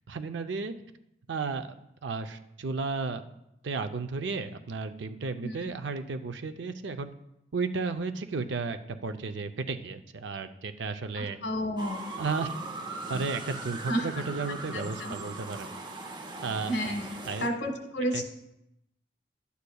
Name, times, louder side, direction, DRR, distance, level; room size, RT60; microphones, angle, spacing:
voice 1, 0.1-0.7 1.3-1.7 2.0-3.2 3.6-7.1 7.5-11.4 12.2-12.5 13.1-15.7 16.4-16.7 17.2-17.5 18.1-18.2, right 4 dB, 90° right, 8 dB, 0.5 m, -33 dB
voice 2, 11.1-12.0 13.9-14.1 14.7-15.1 16.7-17.0 17.4-18.2, equal, 75° left, 4 dB, 1.5 m, -31 dB
sound 1, 11.8-17.5, right 2 dB, 25° right, 0.6 m, -39 dB
11.5 x 8.2 x 2.3 m, 0.83 s
head